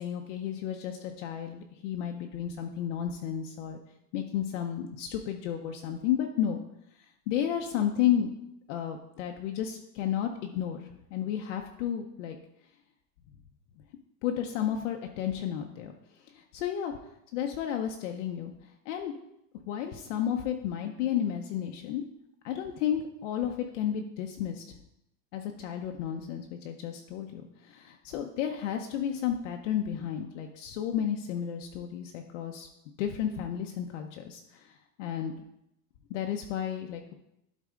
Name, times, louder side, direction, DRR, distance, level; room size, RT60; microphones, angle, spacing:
voice 1, 0.0-3.8 4.1-6.6 7.3-8.3 8.7-12.4 14.2-15.9 16.3-16.9 17.3-18.5 18.9-19.1 19.7-22.1 22.4-24.6 25.3-32.7 33.0-35.3 36.1-37.1, left 9 dB, 50° left, 3 dB, 0.6 m, -32 dB
12.0 x 4.2 x 3.7 m, 0.83 s
supercardioid pair, 170°, 49 cm